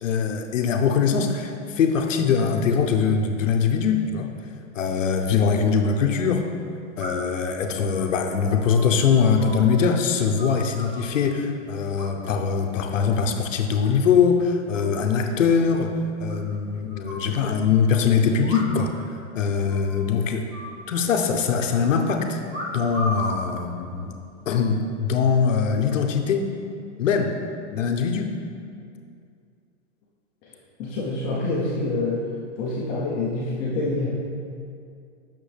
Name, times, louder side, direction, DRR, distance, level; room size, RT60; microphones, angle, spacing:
voice 1, 0.0-4.3 4.7-6.4 7.0-15.9 16.2-18.9 19.3-20.4 20.9-22.4 22.7-24.1 24.5-26.5 27.0-27.3 27.7-28.3, left 6 dB, 90° left, 4 dB, 0.8 m, -22 dB
sound 1, 7.0-7.4 7.8-9.9 10.1-11.2 12.0-12.5 12.8-13.2 13.5-14.1 14.4-14.5 14.7-14.8 15.1-15.2 15.5-15.6 16.3-17.3 18.4-19.0 19.3-19.4 19.7-20.0 20.5-21.4 22.5-23.4 24.1-24.5, left 1 dB, 20° right, 1.3 m, -36 dB
voice 2, 30.8-32.2 32.6-34.1, left 2 dB, 25° left, -5 dB, 0.7 m, -26 dB
8.8 x 6.1 x 3.3 m, 2.4 s
hypercardioid pair, 155°, 37 cm